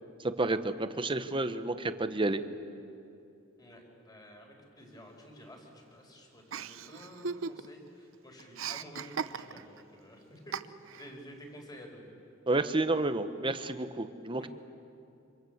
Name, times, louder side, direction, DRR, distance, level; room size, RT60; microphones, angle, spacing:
voice 1, 0.2-2.4 12.5-14.5, right 2 dB, 25° right, 10 dB, 1.1 m, -30 dB
voice 2, 3.6-12.1 14.4-14.5, equal, 20° left, 2 dB, 4.8 m, -51 dB
Chuckle chortle, 6.5-7.9 8.1-9.8 10.5-11.1, right 6 dB, 80° right, 0.8 m, -38 dB
27.5 x 26.5 x 8.0 m, 2.7 s
head